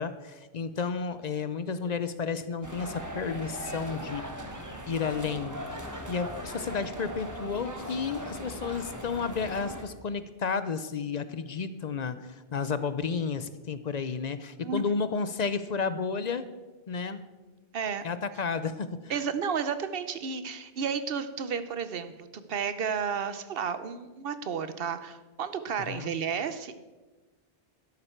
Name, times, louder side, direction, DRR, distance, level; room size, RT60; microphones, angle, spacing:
voice 1, 0.0-4.2 4.9-5.6 6.1-16.4 16.9-17.2 18.0-19.1 25.9-26.1, left 5 dB, 50° left, 12 dB, 0.6 m, -32 dB
sound 1, 2.6-9.8, equal, 15° right, 1.2 m, -39 dB
voice 2, 17.7-18.0 19.1-26.7, right 6 dB, 65° right, 11 dB, 0.9 m, -32 dB
12.5 x 11.0 x 4.5 m, 1.2 s
omnidirectional pair, 1.1 m